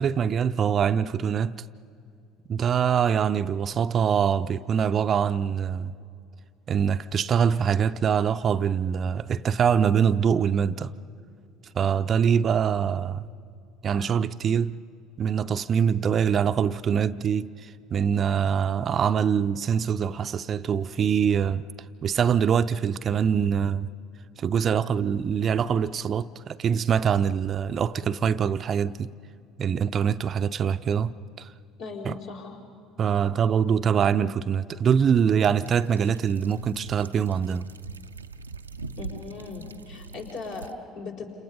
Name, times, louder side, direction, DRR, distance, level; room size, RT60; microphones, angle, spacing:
voice 1, 0.0-1.6 2.5-5.9 6.7-10.9 11.8-13.3 13.8-14.8 15.2-21.6 22.0-23.9 24.4-29.1 29.6-31.5 32.1-32.2 33.0-37.7, right 7 dB, 40° right, 0.5 m, -24 dB
voice 2, 31.8-32.6 39.0-41.3, left 4 dB, 60° left, 4.3 m, -38 dB
sound 1, 35.5-40.7, right 4 dB, 85° right, 0.5 m, -42 dB
30.0 x 27.5 x 5.4 m
figure-of-eight pair, 60°, 0 cm